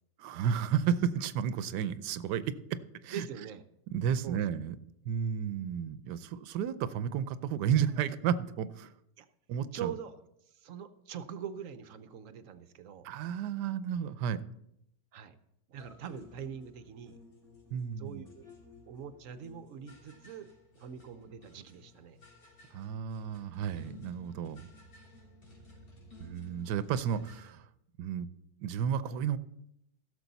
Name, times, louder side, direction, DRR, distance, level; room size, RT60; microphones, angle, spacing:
voice 1, 0.2-2.6 3.0-3.2 3.9-8.9 9.5-9.9 13.0-14.4 17.7-18.2 22.7-24.6 26.2-27.6 28.0-28.3 28.6-29.4, right 8 dB, 80° right, 14 dB, 1.2 m, -32 dB
voice 2, 3.1-3.6 4.2-4.4 9.2-9.3 9.7-10.2 10.6-13.1 15.1-15.4 15.7-17.2 18.0-18.5 18.9-20.5 20.8-22.2, right 8 dB, 60° right, 11 dB, 0.9 m, -43 dB
sound 1, 15.7-27.5, left 3 dB, 85° left, 4.0 m, -56 dB
16.5 x 6.9 x 4.0 m, 0.80 s
omnidirectional pair, 1.8 m